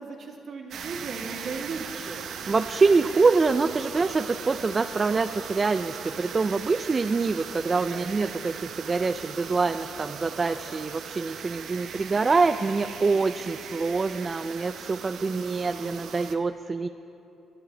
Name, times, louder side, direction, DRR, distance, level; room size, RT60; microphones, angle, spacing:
voice 1, 0.0-2.2 7.7-8.1, right 4 dB, 55° right, 0 dB, 2.0 m, -37 dB
sound 1, 0.7-16.4, right 7 dB, 70° right, 0.7 m, -39 dB
voice 2, 2.5-16.9, right 4 dB, 30° right, 9 dB, 0.3 m, -25 dB
21.0 x 11.5 x 3.3 m, 3.0 s
cardioid pair, 90°, 0 cm